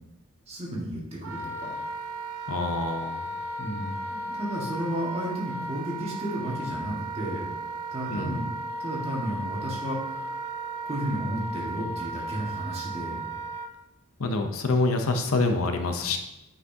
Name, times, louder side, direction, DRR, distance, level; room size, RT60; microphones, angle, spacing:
voice 1, 0.5-1.8 3.6-7.5 7.9-8.5 8.8-10.4 10.8-13.3, equal, 30° right, -3 dB, 1.7 m, -33 dB
Wind instrument woodwind instrument, 1.2-13.7, right 2 dB, 90° right, 0.7 m, -35 dB
voice 2, 2.5-3.3 8.1-8.4 14.2-16.2, left 3 dB, 65° left, 6 dB, 0.7 m, -26 dB
8.0 x 5.9 x 2.8 m, 0.91 s
head